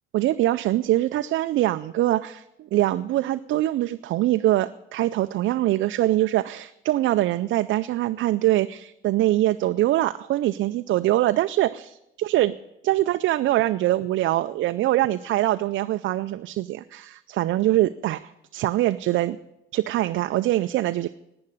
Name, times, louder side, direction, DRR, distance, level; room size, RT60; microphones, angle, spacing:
voice 1, 0.1-12.5 12.8-19.4 19.7-21.1, right 15 dB, 75° right, 11 dB, 0.5 m, -23 dB
11.5 x 9.6 x 9.8 m, 0.87 s
cardioid pair, 90°, 20 cm